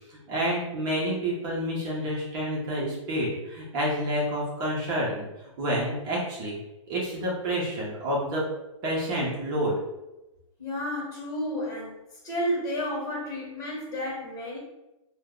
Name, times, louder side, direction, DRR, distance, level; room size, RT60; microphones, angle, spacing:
voice 1, 0.1-5.3 5.6-6.6 6.9-8.5 8.8-9.8, equal, 40° right, -5 dB, 0.9 m, -29 dB
voice 2, 10.6-12.0 12.2-14.6, equal, 20° left, -4 dB, 1.4 m, -31 dB
2.6 x 2.3 x 3.7 m, 1.0 s
hypercardioid pair, 135°, 17 cm